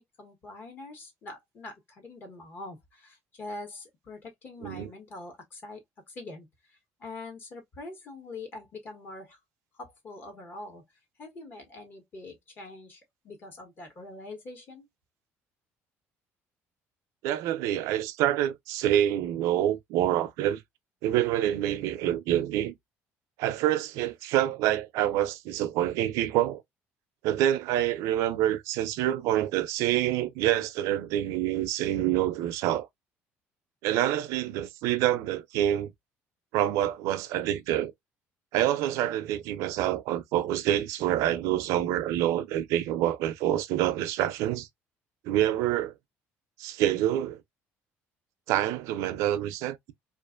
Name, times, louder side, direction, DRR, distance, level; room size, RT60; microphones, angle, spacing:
voice 1, 0.0-9.4 9.7-10.8 11.2-14.9, left 2 dB, 40° left, 1.1 m, -44 dB
voice 2, 17.2-20.6 21.0-22.7 23.4-26.6 27.2-32.9 33.8-35.9 36.5-37.9 38.5-44.7 45.2-45.9 46.6-47.4 48.5-49.9, right 12 dB, 85° right, 0.4 m, -27 dB
2.5 x 2.4 x 2.4 m
cardioid pair, 135°, 5 cm